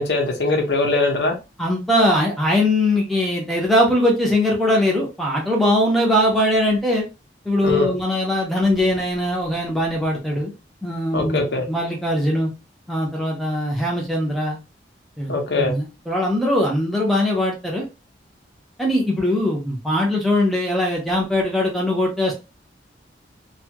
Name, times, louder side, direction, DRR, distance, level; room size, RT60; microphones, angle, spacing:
voice 1, 0.0-1.3 7.6-7.9 11.1-11.7 15.3-15.8, left 2 dB, 75° left, 0.8 m, -21 dB
voice 2, 1.6-7.0 7.4-10.5 10.8-11.4 11.7-12.5 12.9-14.6 15.2-17.9 18.8-22.4, left 1 dB, ahead, 0.8 m, -21 dB
2.7 x 2.4 x 2.8 m
head